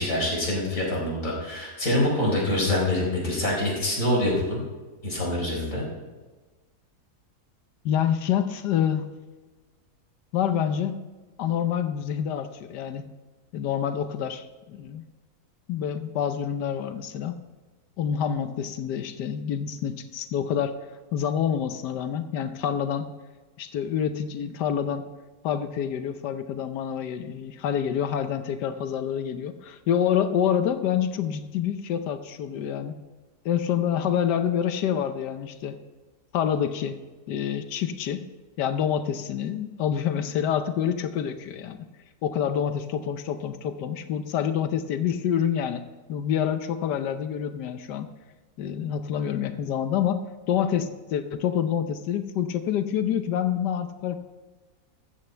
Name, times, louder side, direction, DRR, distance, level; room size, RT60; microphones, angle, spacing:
voice 1, 0.0-4.6 5.0-5.8, left 1 dB, 50° left, -2 dB, 4.7 m, -25 dB
voice 2, 7.8-9.1 10.3-11.0 11.4-13.1 13.5-15.0 15.7-17.4 18.0-20.8 21.1-23.1 23.6-25.0 25.4-33.0 33.4-35.8 36.3-37.0 37.3-38.2 38.6-41.8 42.2-48.1 48.6-50.2 50.5-54.2, left 9 dB, 90° left, 9 dB, 1.4 m, -27 dB
14.5 x 14.0 x 3.3 m, 1.3 s
omnidirectional pair, 1.8 m